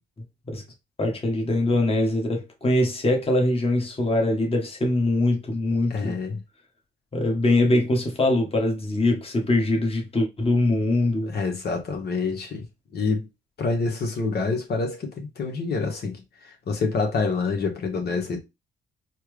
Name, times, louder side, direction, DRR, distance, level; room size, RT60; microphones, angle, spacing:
voice 1, 1.0-6.2 7.1-11.3, left 1 dB, 30° left, 1.6 m, -22 dB
voice 2, 5.9-6.4 11.2-12.6 12.9-13.3 13.6-18.4, left 4 dB, 55° left, 1.6 m, -27 dB
4.3 x 2.5 x 3.3 m
cardioid pair, 90°, 20 cm